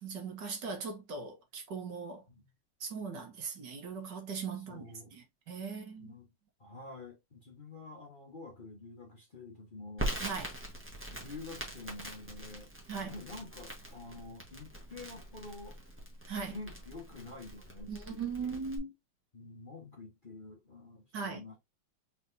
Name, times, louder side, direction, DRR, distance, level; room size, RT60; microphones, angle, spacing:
voice 1, 0.0-2.2 2.8-6.1 10.2-10.5 12.9-13.1 16.3-16.6 17.9-18.9 21.1-21.4, right 5 dB, 70° right, 1.9 m, -39 dB
voice 2, 4.5-5.1 6.0-6.3 6.6-10.1 11.1-12.7 13.0-15.8 16.5-18.6 19.3-21.6, left 3 dB, 30° left, 1.1 m, -48 dB
Crackle, 10.0-18.8, right 1 dB, 10° right, 1.2 m, -43 dB
4.4 x 4.0 x 2.7 m
omnidirectional pair, 2.0 m